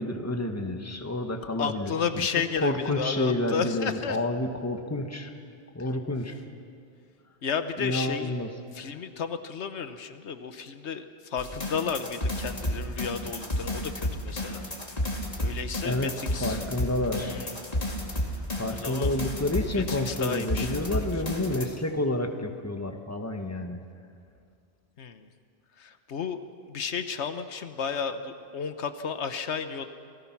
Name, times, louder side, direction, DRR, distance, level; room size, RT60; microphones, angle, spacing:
voice 1, 0.0-2.2 2.6-5.3 5.7-6.3 7.8-8.5 15.8-16.1 16.4-17.4 18.6-23.8, left 1 dB, 15° left, 5 dB, 1.3 m, -29 dB
voice 2, 1.6-4.2 7.4-8.3 8.7-14.7 15.4-16.6 17.2-17.6 18.7-19.2 19.7-21.2 25.0-25.3 25.8-29.9, left 6 dB, 85° left, 9 dB, 1.3 m, -33 dB
sound 1, 11.4-21.6, left 1 dB, 35° left, 2.5 m, -32 dB
28.0 x 18.5 x 6.0 m, 2.3 s
omnidirectional pair, 1.1 m